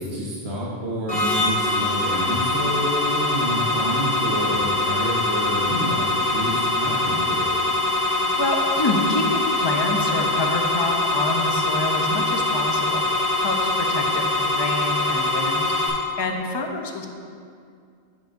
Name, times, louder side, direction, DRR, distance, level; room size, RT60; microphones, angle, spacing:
voice 1, 0.0-7.5, equal, 80° right, -6 dB, 1.3 m, -28 dB
sound 1, 1.1-15.9, left 2 dB, 65° left, 1.9 m, -23 dB
voice 2, 7.9-17.1, left 2 dB, 30° left, 3 dB, 0.5 m, -27 dB
9.2 x 6.9 x 2.6 m, 2.3 s
omnidirectional pair, 1.1 m